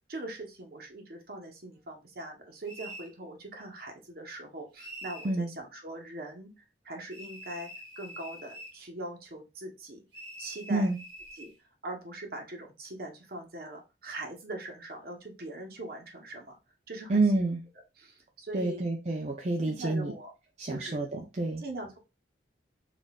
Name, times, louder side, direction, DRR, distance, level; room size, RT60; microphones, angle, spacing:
voice 1, 0.1-6.5 6.8-7.7 8.0-10.0 10.4-10.9 11.3-11.5 11.8-16.6 16.9-17.4 18.0-18.9 19.6-20.3 20.7-21.0 21.6-22.0, right 1 dB, 60° right, 3 dB, 0.9 m, -41 dB
sound 1, 2.7-3.1 4.8-5.4 7.1-8.8 10.1-11.5, equal, 85° right, 1.2 m, -45 dB
voice 2, 17.1-17.6 18.5-20.1 20.6-21.6, right 2 dB, 40° right, 0 dB, 0.5 m, -28 dB
4.0 x 2.5 x 2.2 m, 0.27 s
head